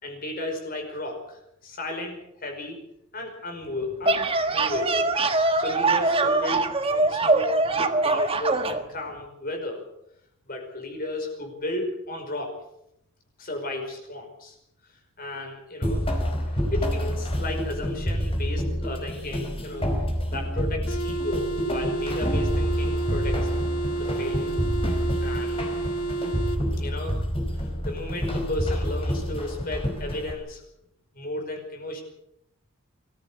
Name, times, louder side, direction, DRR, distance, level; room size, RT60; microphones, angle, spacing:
voice 1, 0.0-2.8 3.1-5.1 5.6-9.8 10.5-12.5 13.4-14.6 15.2-19.9 20.3-23.4 24.0-24.5 25.2-25.6 26.8-27.3 27.5-30.6 31.1-32.0, left 2 dB, 40° left, 3 dB, 5.4 m, -34 dB
sound 1, 3.8-8.8, right 3 dB, 25° right, 1.5 m, -23 dB
sound 2, 15.8-30.3, equal, 25° left, 4.7 m, -28 dB
sound 3, 20.9-26.6, right 3 dB, 85° left, 1.8 m, -30 dB
24.0 x 15.5 x 8.2 m, 0.80 s
head